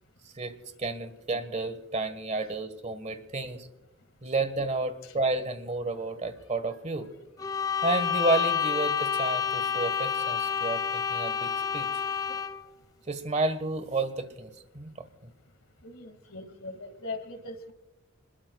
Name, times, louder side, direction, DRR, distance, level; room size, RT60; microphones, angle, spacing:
voice 1, 0.2-3.7 4.2-7.1 7.8-11.9 13.1-15.0, right 2 dB, 35° right, 10 dB, 1.5 m, -31 dB
sound 1, 7.4-12.7, left 7 dB, 20° left, 0.5 m, -29 dB
voice 2, 15.8-17.7, left 2 dB, 75° left, 8 dB, 2.2 m, -40 dB
28.0 x 20.5 x 2.4 m, 0.95 s
head